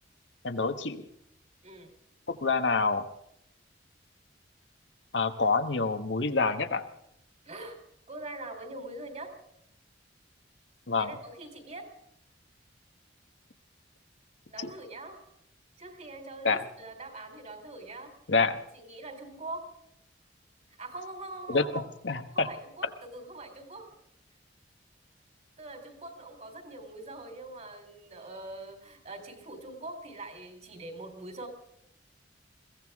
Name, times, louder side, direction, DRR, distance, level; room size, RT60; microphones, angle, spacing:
voice 1, 0.4-1.0 2.3-3.0 5.1-6.8 10.9-11.1 14.6-14.7 16.4-16.6 18.3-18.6 21.5-22.5, left 4 dB, 80° left, 7 dB, 1.3 m, -27 dB
voice 2, 7.4-7.8 8.1-9.4 11.0-11.9 14.5-15.2 15.8-18.1 18.7-19.7 20.8-21.8 22.3-23.9 25.6-31.5, right 2 dB, 40° right, 6 dB, 3.6 m, -43 dB
22.0 x 16.0 x 3.6 m, 0.76 s
head